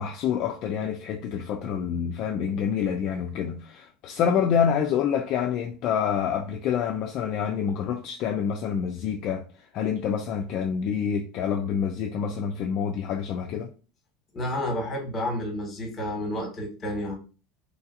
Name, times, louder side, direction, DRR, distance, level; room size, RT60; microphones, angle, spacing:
voice 1, 0.0-9.4 9.7-13.7, left 7 dB, 50° left, 0.3 m, -27 dB
voice 2, 14.3-17.1, left 1 dB, 25° left, 1.2 m, -30 dB
3.1 x 2.6 x 2.5 m
supercardioid pair, 135°, 0 cm